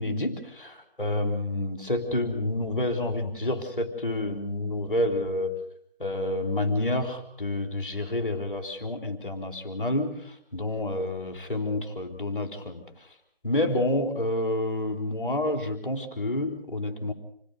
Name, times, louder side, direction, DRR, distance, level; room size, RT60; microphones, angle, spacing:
voice 1, 0.0-5.6 6.0-12.8 13.4-17.1, left 1 dB, ahead, 4 dB, 2.9 m, -29 dB
27.0 x 18.0 x 6.4 m, 0.66 s
figure-of-eight pair, 175°, 29 cm